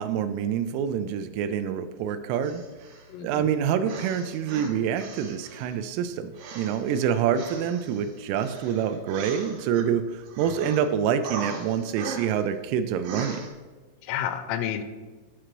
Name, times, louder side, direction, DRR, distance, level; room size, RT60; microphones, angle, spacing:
voice 1, 0.0-2.6 3.2-13.5, right 8 dB, 85° right, 11 dB, 3.0 m, -27 dB
sound 1, 2.4-3.1 3.8-5.8 6.3-9.9 10.2-10.8 11.2-12.5 13.0-13.5, right 4 dB, 65° right, 3.2 m, -39 dB
voice 2, 3.1-3.5 10.4-10.7 14.0-14.8, left 10 dB, 85° left, 10 dB, 3.3 m, -31 dB
10.0 x 4.8 x 5.9 m, 1.3 s
omnidirectional pair, 5.9 m